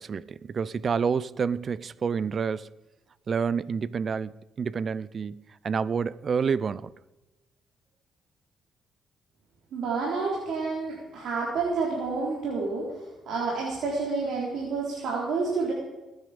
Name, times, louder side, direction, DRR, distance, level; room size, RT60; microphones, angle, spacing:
voice 1, 0.0-2.7 3.3-6.9, right 6 dB, 45° right, 0.5 m, -29 dB
voice 2, 9.7-13.0 13.3-15.7, right 4 dB, 75° right, 3.9 m, -29 dB
20.5 x 9.9 x 5.2 m
cardioid pair, 90°, 0 cm